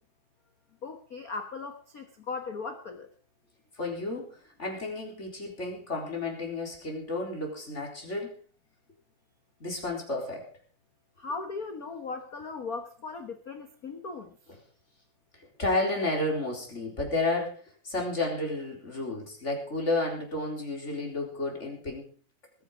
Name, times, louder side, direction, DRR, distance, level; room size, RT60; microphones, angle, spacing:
voice 1, 0.8-3.1 11.2-14.4, left 4 dB, 70° left, 6 dB, 0.8 m, -38 dB
voice 2, 3.7-8.3 9.6-10.5 15.6-22.1, left 2 dB, 20° left, 0 dB, 4.1 m, -32 dB
20.0 x 9.8 x 5.0 m, 0.42 s
omnidirectional pair, 3.6 m